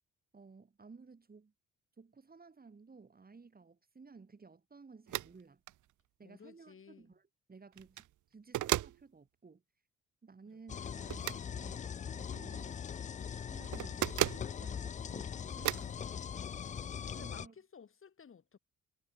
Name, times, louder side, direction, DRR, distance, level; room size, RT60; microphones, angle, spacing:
voice 1, 0.3-1.5 2.0-5.6 6.2-7.2 7.5-9.6 10.2-12.8 13.5-15.7 17.2-17.5, right 4 dB, 30° right, 6.5 m, -56 dB
sound 1, 5.1-5.3 5.7-5.8 7.7-8.1 8.5-9.0 11.1-11.4 13.7-14.5 15.7-15.9, right 14 dB, 75° right, 1.2 m, -34 dB
voice 2, 6.2-7.2 10.5-10.6 16.4-18.6, left 6 dB, 45° left, 5.6 m, -57 dB
sound 2, 10.7-17.5, left 7 dB, 25° left, 0.3 m, -41 dB
cardioid pair, 90°, 30 cm